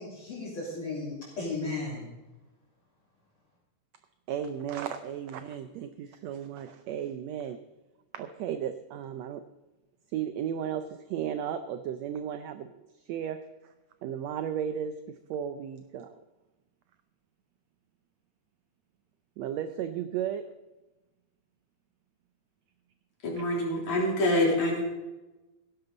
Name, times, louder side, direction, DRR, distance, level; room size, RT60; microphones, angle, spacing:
voice 1, 0.0-2.1, left 3 dB, 40° left, -8 dB, 4.2 m, -35 dB
voice 2, 4.3-7.6 8.1-9.4 10.1-12.7 13.1-13.7 14.0-16.2 19.4-20.5, right 9 dB, 80° right, 10 dB, 1.6 m, -34 dB
voice 3, 23.2-24.8, left 1 dB, 60° left, -2 dB, 4.6 m, -26 dB
16.5 x 11.5 x 3.9 m, 1.1 s
omnidirectional pair, 3.7 m